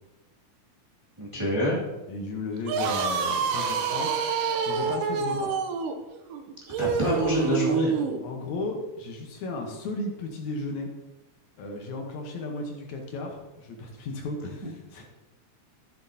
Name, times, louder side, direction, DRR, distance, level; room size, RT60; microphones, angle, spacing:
voice 1, 1.2-1.8 6.8-8.0, equal, 10° right, -7 dB, 1.7 m, -26 dB
voice 2, 2.1-4.1 4.7-5.5 8.2-10.9 11.6-15.0, left 2 dB, 70° left, 1 dB, 2.4 m, -34 dB
sound 1, 2.6-8.2, right 5 dB, 85° right, 2.3 m, -27 dB
14.5 x 7.4 x 2.8 m, 1.1 s
omnidirectional pair, 3.6 m